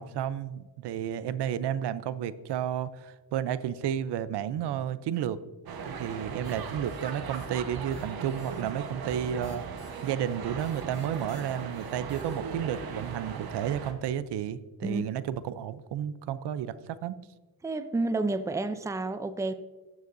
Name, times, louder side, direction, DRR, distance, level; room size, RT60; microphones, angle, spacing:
voice 1, 0.0-5.4 5.8-9.6 10.0-17.2, right 10 dB, 80° right, 15 dB, 0.6 m, -32 dB
sound 1, 5.7-13.9, right 5 dB, 60° right, 1.2 m, -38 dB
sound 2, 6.4-7.5 7.8-12.7, left 3 dB, 90° left, 2.4 m, -53 dB
voice 2, 17.6-19.5, right 2 dB, 10° right, 11 dB, 0.5 m, -30 dB
14.5 x 9.4 x 2.6 m, 1.2 s
cardioid pair, 105°, 41 cm